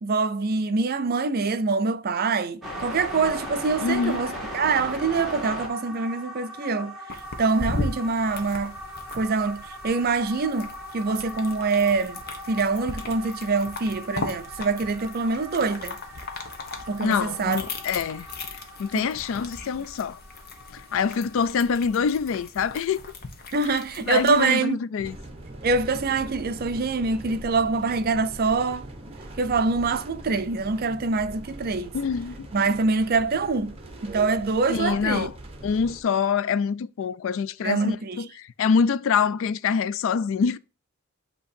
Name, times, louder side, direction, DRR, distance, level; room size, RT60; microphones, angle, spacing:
voice 1, 0.0-7.0 7.4-8.8 9.1-12.2 12.5-16.0 16.9-17.6 18.9-19.1 23.5-24.8 25.6-28.9 29.4-32.0 32.5-35.3 37.6-38.2, right 4 dB, 45° right, 0.5 m, -25 dB
sound 1, 2.6-22.5, equal, ahead, 2.0 m, -39 dB
voice 2, 3.8-4.2 17.0-18.3 18.8-20.2 20.9-23.0 23.7-25.2 31.9-32.5 34.7-35.3 35.6-38.3 38.6-40.6, left 6 dB, 65° left, 0.3 m, -25 dB
sound 2, 7.1-24.5, left 2 dB, 45° left, 1.0 m, -38 dB
sound 3, 25.0-36.0, right 2 dB, 25° right, 1.0 m, -41 dB
8.2 x 2.9 x 4.3 m
head